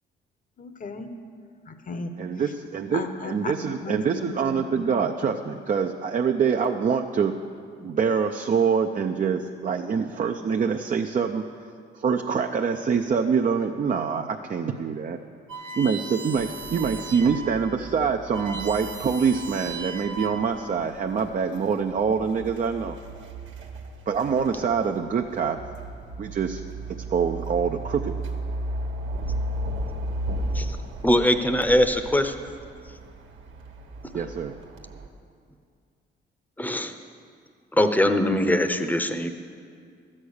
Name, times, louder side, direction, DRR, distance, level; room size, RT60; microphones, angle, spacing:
voice 1, 0.6-1.1 1.7-2.2 2.9-5.0, left 3 dB, 45° left, 8 dB, 1.0 m, -35 dB
voice 2, 2.2-7.3 7.8-11.4 11.9-15.2 15.8-23.0 24.1-25.6 26.2-26.6 27.1-28.1 34.1-34.5, right 6 dB, 40° right, 4 dB, 0.6 m, -25 dB
sound 1, 15.5-17.5 17.9-18.0 18.2-20.6, right 4 dB, 90° right, 1.2 m, -37 dB
sound 2, 16.4-35.1, right 1 dB, 75° right, 1.5 m, -35 dB
voice 3, 31.0-32.3 34.1-34.2 36.6-36.9 37.7-39.3, left 1 dB, 10° left, 8 dB, 0.8 m, -22 dB
12.5 x 8.6 x 6.5 m, 2.2 s
cardioid pair, 90°, 20 cm